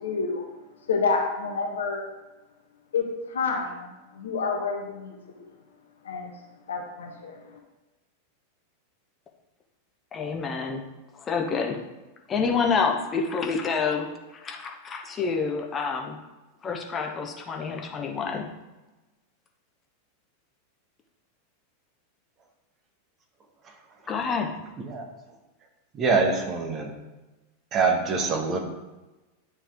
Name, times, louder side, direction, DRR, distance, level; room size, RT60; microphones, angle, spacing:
voice 1, 0.0-0.4 0.9-2.0 2.9-5.1 6.0-6.3 6.7-7.4, left 4 dB, 65° left, 2 dB, 1.2 m, -28 dB
voice 2, 10.1-10.8 11.3-11.8 12.3-14.1 14.4-16.2 16.6-18.5 24.1-24.5, left 5 dB, 25° left, 2 dB, 1.1 m, -27 dB
voice 3, 24.8-25.1 25.9-26.9 27.7-28.6, right 4 dB, 30° right, 3 dB, 1.2 m, -24 dB
10.5 x 4.4 x 3.5 m, 1.1 s
figure-of-eight pair, 90°, 0 cm